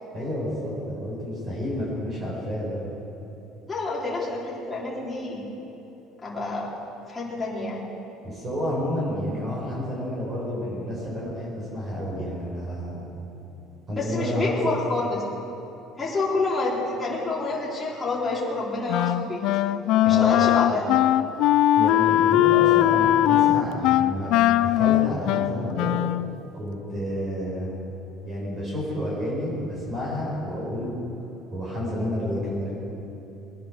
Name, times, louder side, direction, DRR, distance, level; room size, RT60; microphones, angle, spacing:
voice 1, 0.1-2.8 8.2-13.0 13.9-14.6 20.0-20.5 21.7-26.0 26.5-27.7 28.2-30.9 31.5-32.7, equal, 30° right, -5 dB, 4.8 m, -30 dB
voice 2, 3.7-5.4 6.2-6.7 7.1-7.8 13.9-15.2 16.0-19.4 19.9-20.9, left 3 dB, 15° left, -6 dB, 3.5 m, -28 dB
Wind instrument woodwind instrument, 18.9-26.4, left 14 dB, 65° left, 0.4 m, -20 dB
21.5 x 10.5 x 6.4 m, 3.0 s
cardioid pair, 150°, 0 cm